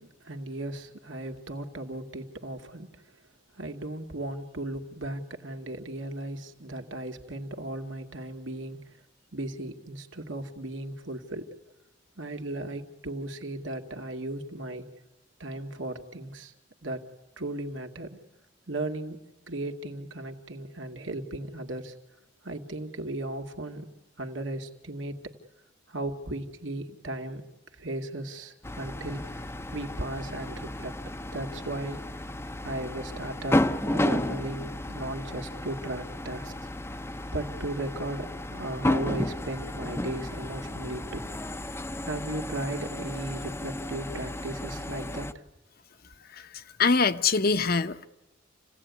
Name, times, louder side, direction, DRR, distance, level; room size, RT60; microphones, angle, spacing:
voice 1, 0.0-3.1 3.5-9.0 9.3-11.5 12.2-14.9 15.4-16.5 16.8-17.1 17.4-18.2 18.7-21.9 22.4-23.9 24.2-25.3 25.9-27.4 27.7-31.0 31.3-32.0 32.6-36.5 36.9-37.0 37.3-41.3 42.0-45.4, right 1 dB, 80° right, 2.4 m, -36 dB
sound 1, 28.6-45.3, left 1 dB, 15° left, 0.8 m, -33 dB
voice 2, 46.8-48.1, left 4 dB, 50° left, 1.0 m, -23 dB
28.5 x 17.5 x 9.6 m
head